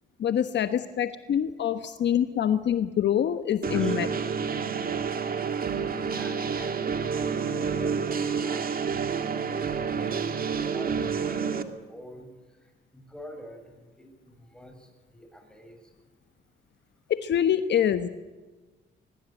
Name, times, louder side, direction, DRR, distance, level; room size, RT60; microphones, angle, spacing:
voice 1, 0.2-4.1 17.1-18.1, left 9 dB, 60° left, 10 dB, 1.2 m, -25 dB
sound 1, 3.6-11.6, right 6 dB, 45° right, 2.1 m, -29 dB
voice 2, 6.1-8.7 9.4-9.7 9.9-16.0, equal, 5° left, 4 dB, 7.2 m, -47 dB
22.0 x 21.5 x 9.1 m, 1.2 s
cardioid pair, 90°, 20 cm